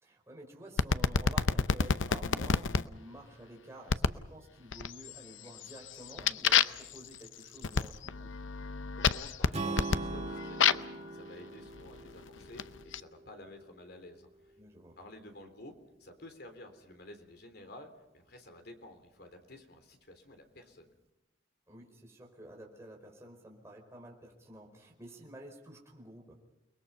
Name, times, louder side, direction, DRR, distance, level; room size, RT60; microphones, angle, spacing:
voice 1, 0.0-8.4 14.6-15.0 21.7-26.3, right 1 dB, 15° right, -1 dB, 5.0 m, -51 dB
sound 1, 0.8-2.8 3.9-4.2 4.7-5.2 5.6-11.0 11.8-13.0, left 6 dB, 85° left, 0.7 m, -30 dB
voice 2, 8.9-10.9 11.1-14.5 15.0-20.9, left 1 dB, 55° left, 6 dB, 3.5 m, -51 dB
Strum, 9.5-13.7, right 3 dB, 35° right, 1.5 m, -41 dB
30.0 x 20.5 x 5.6 m, 0.97 s
head